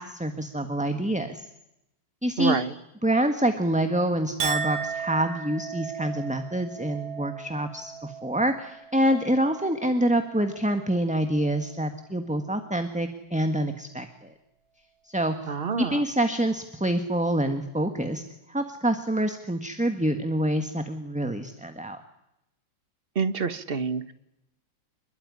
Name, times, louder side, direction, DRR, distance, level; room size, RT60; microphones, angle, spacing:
voice 1, 0.0-1.5 2.2-2.6 3.0-14.3 15.1-15.4 15.8-18.2 18.5-22.0, right 1 dB, 5° right, 7 dB, 1.5 m, -26 dB
voice 2, 2.4-2.7 15.5-16.0 23.1-24.1, right 5 dB, 35° right, 13 dB, 1.4 m, -27 dB
Chink clink, 4.4-11.0 11.3-11.9, right 6 dB, 85° right, 2.3 m, -36 dB
27.0 x 22.0 x 9.9 m, 0.86 s
omnidirectional pair, 2.0 m